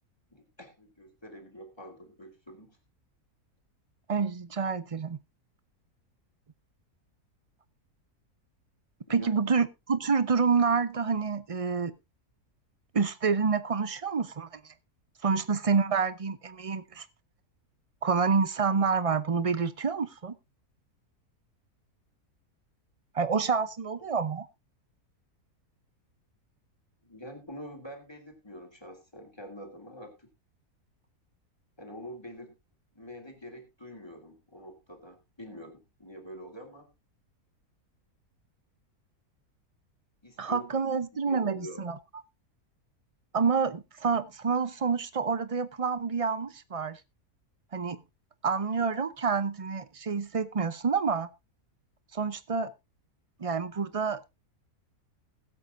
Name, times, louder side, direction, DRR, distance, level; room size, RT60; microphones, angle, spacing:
voice 1, 0.3-2.8 9.1-9.4 27.0-30.3 31.8-32.6 32.9-36.9 40.2-40.9 41.3-41.8, equal, 15° left, 2.8 m, -45 dB
voice 2, 4.1-5.2 9.1-11.9 12.9-14.7 15.2-17.1 18.0-20.4 23.1-24.5 40.4-42.0 43.3-47.0 47.7-48.0 48.4-51.3 52.1-52.7 53.4-54.2, right 5 dB, 35° right, 0.5 m, -28 dB
21.0 x 8.2 x 2.6 m
omnidirectional pair, 1.6 m